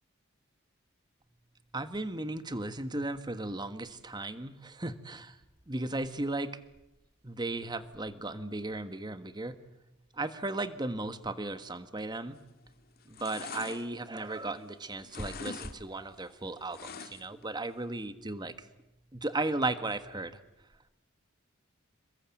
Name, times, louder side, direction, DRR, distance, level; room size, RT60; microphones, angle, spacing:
voice 1, 1.7-5.4 5.7-6.6 7.4-9.6 10.1-12.4 13.1-18.7 19.1-20.4, right 2 dB, 20° right, 11 dB, 1.5 m, -35 dB
sound 1, 12.3-12.7 13.0-14.7 15.0-15.8 16.0-17.4 17.8-17.9, left 5 dB, 50° left, 1.9 m, -44 dB
28.0 x 22.0 x 9.1 m, 0.90 s
head